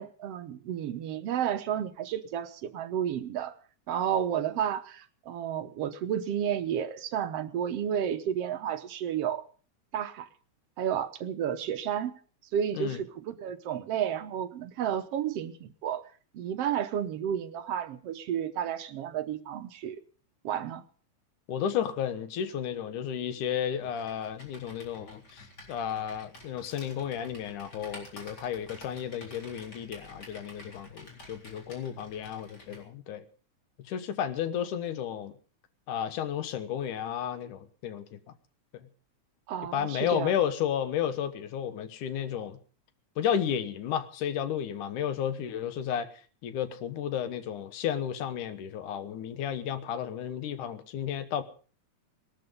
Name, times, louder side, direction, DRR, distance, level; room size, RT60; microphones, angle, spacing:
voice 1, 0.0-3.5 3.9-9.4 9.9-10.3 10.8-12.2 12.5-16.0 16.3-20.0 20.4-20.8 39.5-40.3, right 9 dB, 65° right, 8 dB, 1.8 m, -31 dB
voice 2, 21.5-33.2 33.9-35.3 35.9-38.2 38.7-38.9 39.7-42.6 43.2-46.1 46.4-51.4, left 9 dB, 90° left, 12 dB, 2.7 m, -32 dB
Computer keyboard, 23.8-32.9, left 1 dB, 30° left, 4.5 m, -50 dB
19.5 x 12.5 x 5.4 m, 0.41 s
omnidirectional pair, 3.5 m